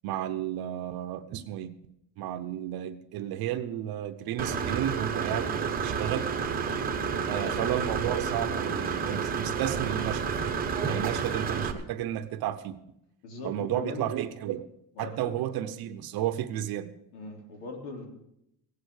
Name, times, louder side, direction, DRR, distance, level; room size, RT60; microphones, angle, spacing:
voice 1, 0.0-1.7 2.2-6.3 7.3-10.4 10.8-12.8 13.4-14.7 15.0-16.9, right 11 dB, 55° right, 10 dB, 0.9 m, -32 dB
Engine / Mechanisms, 4.4-11.7, right 6 dB, 20° right, 0.9 m, -30 dB
voice 2, 7.3-7.7 13.2-14.1 14.9-15.2 17.1-18.1, left 3 dB, 85° left, 1 dB, 3.9 m, -40 dB
16.5 x 8.7 x 6.5 m, 0.78 s
cardioid pair, 170°, 45 cm